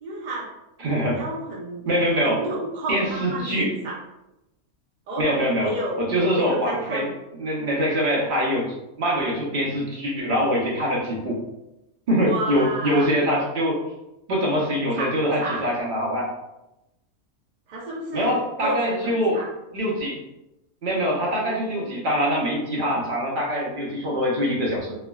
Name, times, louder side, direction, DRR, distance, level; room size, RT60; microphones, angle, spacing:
voice 1, 0.0-0.5 1.1-1.8 2.2-4.0 5.1-5.3 5.6-7.1 12.2-13.1 14.9-15.7 17.7-19.5 21.4-21.9, right 1 dB, 80° right, -4 dB, 0.4 m, -31 dB
voice 2, 0.8-1.2 1.9-2.4 2.9-3.7 5.2-11.4 12.1-13.8 14.3-16.3 18.1-19.4 19.7-20.2 20.8-24.9, equal, 50° right, -4 dB, 0.7 m, -24 dB
3.3 x 2.1 x 2.2 m, 0.93 s
omnidirectional pair, 1.5 m